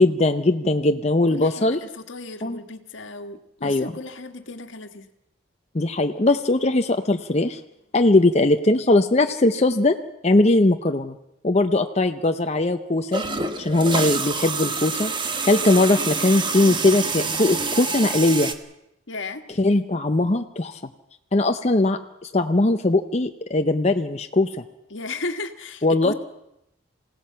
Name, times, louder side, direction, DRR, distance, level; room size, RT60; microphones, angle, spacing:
voice 1, 0.0-1.8 2.4-2.6 3.6-3.9 5.7-7.6 7.9-10.0 10.2-11.2 11.4-13.2 13.6-15.1 15.4-18.5 19.6-20.8 21.3-24.5 25.8-26.1, left 2 dB, 30° left, 6 dB, 0.7 m, -20 dB
voice 2, 1.3-5.1 13.2-13.6 19.1-19.4 24.9-26.1, left 3 dB, 70° left, 8 dB, 1.6 m, -35 dB
sound 1, 13.1-18.5, right 4 dB, 25° right, 1.2 m, -27 dB
28.0 x 17.0 x 5.7 m, 0.86 s
head